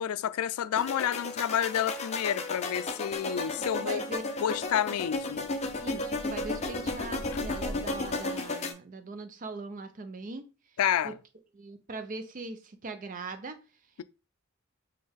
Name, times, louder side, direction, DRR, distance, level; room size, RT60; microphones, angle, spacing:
voice 1, 0.0-4.0 4.4-5.5 10.8-11.2, left 9 dB, 90° left, 0.3 m, -29 dB
sound 1, 0.7-8.7, left 2 dB, 30° left, 0.5 m, -34 dB
voice 2, 3.6-4.2 4.9-5.0 5.8-10.5 11.0-11.1 11.5-13.6, right 3 dB, 40° right, 0.5 m, -40 dB
5.2 x 2.2 x 3.6 m
head